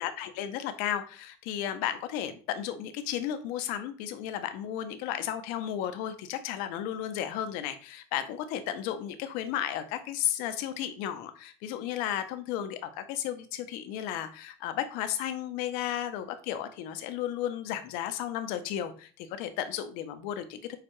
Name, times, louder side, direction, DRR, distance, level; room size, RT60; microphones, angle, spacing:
voice 1, 0.0-20.8, left 11 dB, 75° left, 9 dB, 0.7 m, -34 dB
6.5 x 2.5 x 3.0 m, 0.38 s
supercardioid pair, 100°, 15 cm